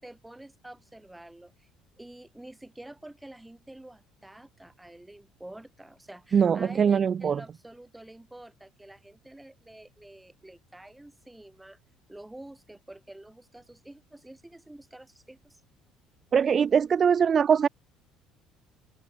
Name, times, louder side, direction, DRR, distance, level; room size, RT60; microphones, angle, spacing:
voice 1, 0.0-1.7 2.0-11.8 12.1-15.6, right 1 dB, 5° right, 4.8 m, -48 dB
voice 2, 6.3-7.4 16.3-17.7, right 7 dB, 30° right, 0.6 m, -22 dB
open air
cardioid pair, 130°, 0 cm